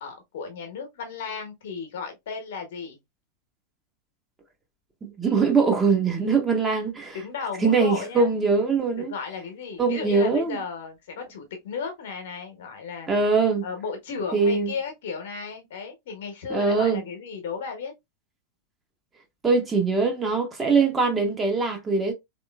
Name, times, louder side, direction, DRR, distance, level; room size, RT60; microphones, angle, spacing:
voice 1, 0.0-3.0 7.1-8.3 9.0-13.1 13.6-17.9, left 5 dB, 55° left, 1.1 m, -34 dB
voice 2, 5.0-7.2 7.6-9.1 9.8-10.6 13.1-13.6 14.3-14.7 16.5-17.0 19.4-22.1, right 4 dB, 15° right, 0.9 m, -22 dB
3.6 x 3.0 x 2.3 m
figure-of-eight pair, 90°, 0 cm